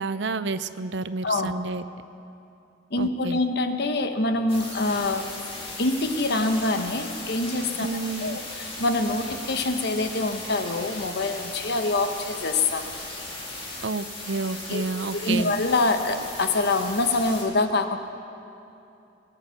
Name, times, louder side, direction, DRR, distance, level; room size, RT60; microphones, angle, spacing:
voice 1, 0.0-1.8 3.0-3.4 7.8-8.4 13.8-15.5, right 3 dB, 65° right, 13 dB, 0.6 m, -30 dB
voice 2, 2.9-5.3 5.8-7.9 8.2-12.9 14.7-14.8 15.1-18.0, left 2 dB, 60° left, 7 dB, 1.0 m, -25 dB
sound 1, 4.5-17.4, left 2 dB, 30° left, 2.7 m, -37 dB
20.0 x 10.0 x 7.0 m, 2.7 s
head